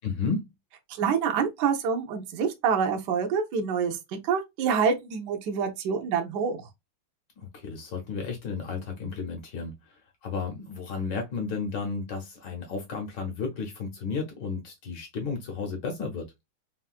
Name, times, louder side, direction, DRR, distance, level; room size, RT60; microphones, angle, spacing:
voice 1, 0.0-0.5 7.4-9.9 10.2-16.3, left 4 dB, 65° left, 1.3 m, -33 dB
voice 2, 0.9-4.0 4.2-6.6, right 6 dB, 70° right, 1.0 m, -26 dB
3.6 x 2.3 x 2.4 m
omnidirectional pair, 2.4 m